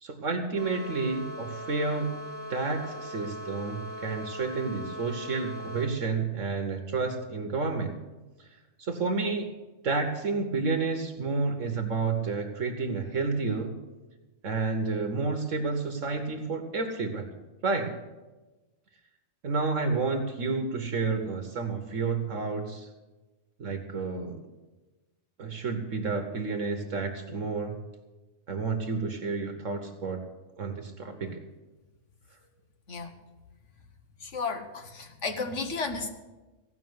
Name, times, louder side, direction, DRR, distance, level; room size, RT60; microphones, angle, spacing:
voice 1, 0.0-2.1 2.5-8.0 8.8-9.5 9.8-13.7 14.4-17.3 17.6-17.9 19.4-22.9 23.6-24.4 25.4-27.8 28.5-30.2 30.6-31.4, right 4 dB, 70° right, 5 dB, 1.5 m, -30 dB
sound 1, 0.5-5.9, left 1 dB, 45° left, 4.5 m, -40 dB
voice 2, 34.3-36.1, left 4 dB, 60° left, 4 dB, 1.6 m, -33 dB
16.0 x 5.9 x 9.5 m, 1.2 s
omnidirectional pair, 1.4 m